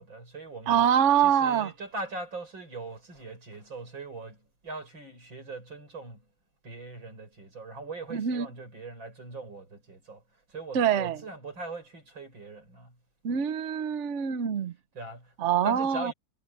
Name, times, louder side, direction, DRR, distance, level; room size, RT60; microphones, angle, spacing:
voice 1, 0.0-0.9 1.2-6.2 6.6-10.2 10.5-13.0 14.9-15.3 15.6-16.1, right 2 dB, 80° right, 7.6 m, -41 dB
voice 2, 0.7-1.7 8.1-8.5 10.7-11.2 13.2-14.7 15.4-16.1, right 9 dB, 50° right, 1.0 m, -24 dB
omnidirectional pair, 2.1 m